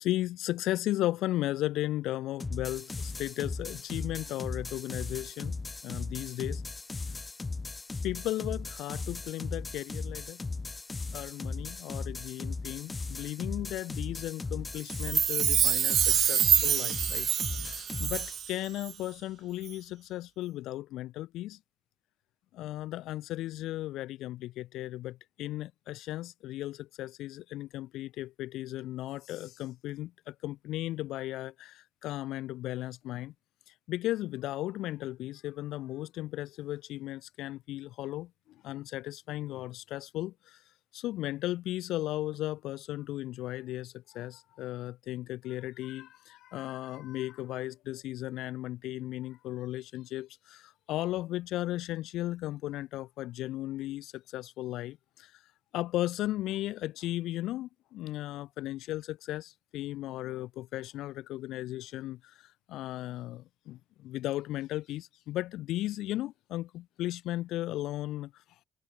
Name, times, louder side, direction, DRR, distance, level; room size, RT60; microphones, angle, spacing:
voice 1, 0.0-6.6 8.0-10.4 11.1-17.3 17.5-21.6 22.5-33.3 33.7-40.6 40.9-55.4 55.7-68.4, left 15 dB, 85° left, 0.7 m, -36 dB
sound 1, 2.4-18.4, left 3 dB, 15° left, 0.6 m, -38 dB
Chime, 14.9-18.5 18.8-18.9, right 10 dB, 50° right, 0.4 m, -26 dB
cardioid pair, 170°, 0 cm